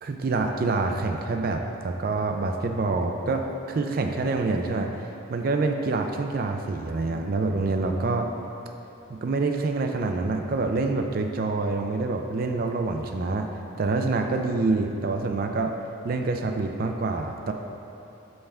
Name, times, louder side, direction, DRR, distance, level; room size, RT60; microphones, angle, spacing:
voice 1, 0.0-4.9 5.3-8.3 9.1-13.5 13.8-15.7 16.0-17.5, right 3 dB, 45° right, 4 dB, 0.3 m, -26 dB
5.6 x 5.5 x 3.4 m, 3.0 s
head